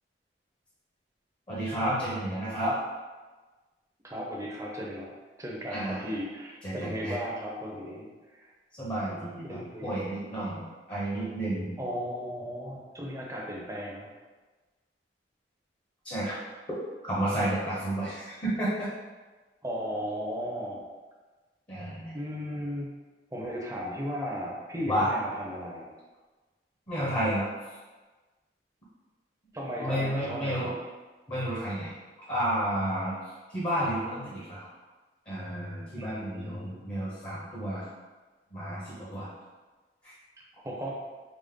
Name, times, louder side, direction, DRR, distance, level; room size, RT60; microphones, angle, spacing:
voice 1, 1.5-2.8 5.7-6.2 6.6-7.2 8.8-11.7 16.0-16.3 16.7-18.9 21.7-22.1 24.8-25.1 26.9-27.8 29.8-30.7 31.3-31.9 32.3-34.7 35.3-37.9 38.5-39.3 40.0-40.1, right 1 dB, 25° left, -8 dB, 0.9 m, -31 dB
voice 2, 4.0-5.1 5.4-8.1 8.4-8.5 9.5-10.0 11.8-14.1 19.6-20.8 22.1-22.9 23.3-25.9 29.5-30.8 36.0-36.9 40.6-41.0, equal, 15° right, -2 dB, 0.6 m, -36 dB
5.1 x 2.1 x 3.6 m, 1.3 s
head